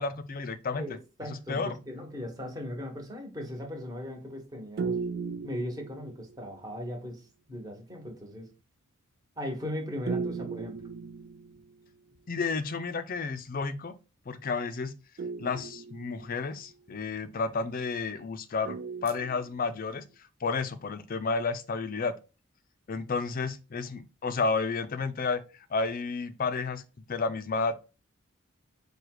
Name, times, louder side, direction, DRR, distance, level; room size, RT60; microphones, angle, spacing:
voice 1, 0.0-0.9 1.5-1.7 12.3-14.0 14.3-14.9 15.4-18.8 19.0-20.0 20.4-22.1 22.9-25.4 25.7-26.8 27.1-27.8, left 4 dB, 45° left, 0.5 m, -31 dB
voice 2, 0.7-5.0 5.4-8.5 9.4-10.8, left 1 dB, 15° right, 1.2 m, -38 dB
sound 1, 4.8-6.5 10.1-11.9 15.2-16.7 18.7-19.9, right 5 dB, 45° right, 0.3 m, -36 dB
4.8 x 2.3 x 4.7 m
head